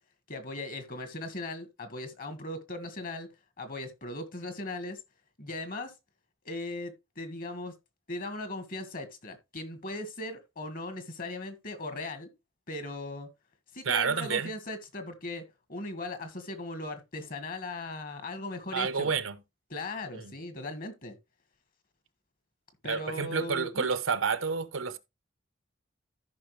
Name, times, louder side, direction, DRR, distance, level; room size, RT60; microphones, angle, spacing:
voice 1, 0.3-3.3 3.6-5.0 5.4-5.9 6.4-7.7 8.1-12.3 12.7-13.3 13.7-15.4 15.7-19.1 19.7-21.2 22.8-23.9, left 2 dB, 45° left, 1.7 m, -38 dB
voice 2, 13.9-14.5 18.7-19.4 20.2-20.3 22.8-25.0, right 5 dB, 80° right, 0.9 m, -29 dB
13.5 x 5.5 x 3.2 m
head